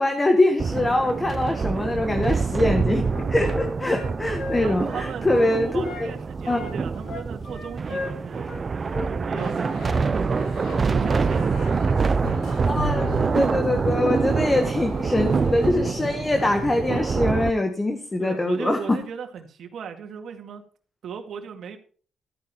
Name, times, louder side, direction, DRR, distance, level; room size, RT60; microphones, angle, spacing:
voice 1, 0.0-6.1 6.5-6.6 12.6-18.8, left 2 dB, 20° left, 5 dB, 1.5 m, -23 dB
sound 1, 0.6-17.5, right 5 dB, 35° right, 0.5 m, -25 dB
Wind instrument woodwind instrument, 2.6-6.1 6.4-9.5 9.8-10.0, left 3 dB, 60° left, 7.1 m, -36 dB
voice 2, 4.6-8.6 9.1-10.0 10.8-12.4 14.3-14.5 18.2-20.6 21.0-21.8, right 7 dB, 65° right, 5 dB, 2.2 m, -37 dB
sound 2, 9.4-16.5, left 5 dB, 85° left, 2.3 m, -38 dB
13.5 x 9.5 x 4.4 m, 0.41 s
cardioid pair, 125°, 0 cm